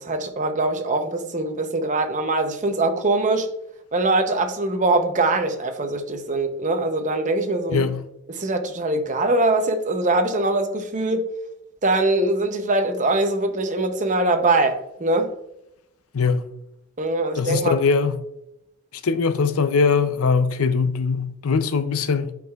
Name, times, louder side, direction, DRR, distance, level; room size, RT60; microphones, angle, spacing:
voice 1, 0.0-3.5 3.9-7.8 8.3-11.3 11.8-15.3 17.0-17.7, right 2 dB, 35° right, 0.7 m, -22 dB
voice 2, 7.7-8.0 16.1-16.5 17.3-18.2 19.0-22.3, left 5 dB, 70° left, 0.5 m, -21 dB
10.5 x 4.7 x 2.4 m
head